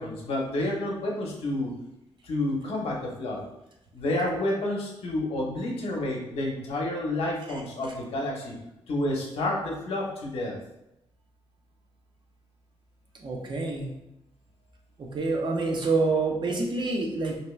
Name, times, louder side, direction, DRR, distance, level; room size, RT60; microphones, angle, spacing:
voice 1, 0.0-1.7 2.2-3.4 3.9-8.6 8.9-10.6, left 1 dB, 70° left, -1 dB, 0.8 m, -29 dB
voice 2, 13.2-13.9 15.0-17.4, right 3 dB, 50° right, 1 dB, 0.7 m, -27 dB
2.8 x 2.2 x 3.1 m, 0.85 s
cardioid pair, 80°, 10 cm